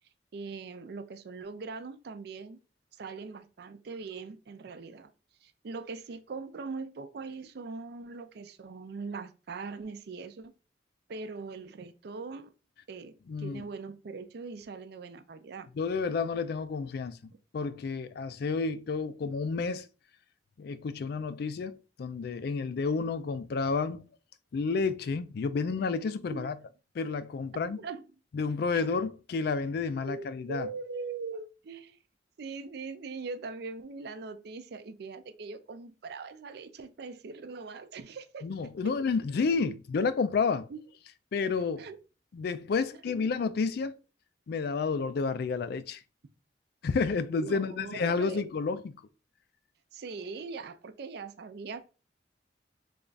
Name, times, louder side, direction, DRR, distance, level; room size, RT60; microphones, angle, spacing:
voice 1, 0.3-2.6 3.0-5.1 5.4-10.5 11.1-12.5 12.9-15.7 26.3-26.5 27.5-28.0 28.7-28.8 30.1-32.0 32.4-38.5 38.8-38.9 40.7-40.8 41.8-42.0 42.9-43.2 47.4-48.4 49.9-51.9, right 4 dB, 60° right, 0.4 m, -41 dB
voice 2, 13.3-13.6 15.8-17.2 17.5-19.9 20.6-24.0 24.5-26.5 27.0-27.8 28.3-30.7 38.4-40.7 41.3-41.9 42.3-44.0 44.5-46.0 46.8-48.9, left 4 dB, 60° left, 0.3 m, -30 dB
3.3 x 2.4 x 3.9 m
head